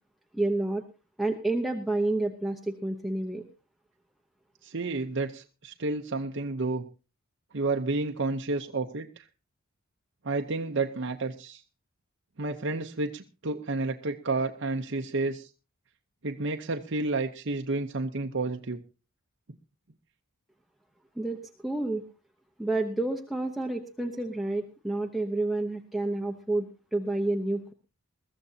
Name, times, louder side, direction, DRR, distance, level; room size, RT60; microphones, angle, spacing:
voice 1, 0.3-0.8 1.2-3.4 21.2-22.0 22.6-27.7, right 2 dB, ahead, 3 dB, 0.8 m, -29 dB
voice 2, 4.6-6.8 7.5-9.2 10.2-11.6 12.4-15.5 16.2-18.8, right 3 dB, 55° right, 4 dB, 0.8 m, -30 dB
21.5 x 14.5 x 2.8 m, 0.31 s
head